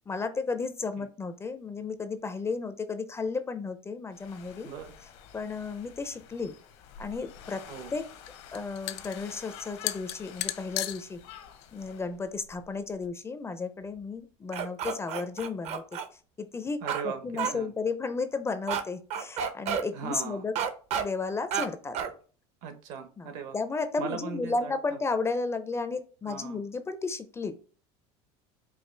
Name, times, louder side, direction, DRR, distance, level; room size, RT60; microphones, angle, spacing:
voice 1, 0.1-4.7 5.3-6.5 7.0-7.6 7.9-8.0 8.5-11.2 11.7-15.8 16.4-16.8 17.2-20.5 21.0-22.0 23.2-27.6, left 4 dB, 20° left, 10 dB, 0.4 m, -33 dB
sound 1, 4.1-12.0, left 9 dB, 70° left, 0.8 m, -50 dB
sound 2, 6.9-13.1, left 14 dB, 90° left, 0.4 m, -38 dB
sound 3, 14.5-16.1 16.9-17.0 17.4-17.5 18.7-18.8 19.1-19.8 20.6-21.0 21.5-21.7 21.9-22.1, right 8 dB, 50° right, 0.6 m, -30 dB
voice 2, 16.8-17.7 19.9-20.5 22.6-23.6 24.0-25.0 26.2-26.6, right 6 dB, 65° right, 7 dB, 1.0 m, -38 dB
4.8 x 2.4 x 3.2 m, 0.39 s
supercardioid pair, 120°, 14 cm